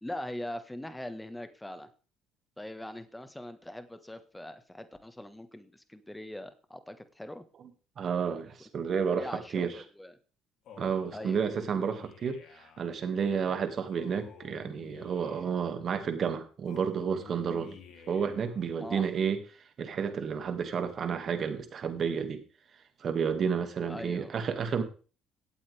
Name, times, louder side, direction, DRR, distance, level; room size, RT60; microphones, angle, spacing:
voice 1, 0.0-1.9 2.6-7.4 9.1-10.2 11.1-11.4 18.8-19.0 23.9-24.3, left 1 dB, 5° left, 10 dB, 1.6 m, -41 dB
voice 2, 8.0-9.7 10.8-17.8 18.1-19.4 19.8-22.4 23.0-24.8, right 6 dB, 50° right, 7 dB, 2.2 m, -31 dB
Male speech man speaking, 10.6-12.9 13.9-15.7 16.6-18.6, left 6 dB, 65° left, 3.1 m, -51 dB
16.5 x 8.6 x 3.6 m, 0.38 s
supercardioid pair, 85°, 0 cm